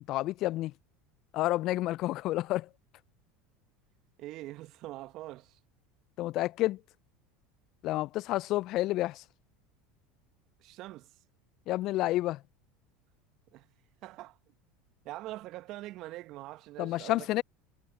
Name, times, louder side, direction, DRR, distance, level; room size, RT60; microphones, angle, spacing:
voice 1, 0.1-0.7 1.3-2.7 6.2-6.8 7.8-9.2 11.7-12.4 16.8-17.4, left 16 dB, 55° left, 0.3 m, -29 dB
voice 2, 4.2-5.6 10.6-11.2 13.5-13.7 14.0-14.5 15.0-17.3, right 17 dB, 55° right, 1.1 m, -43 dB
hypercardioid pair, 80°, 0 cm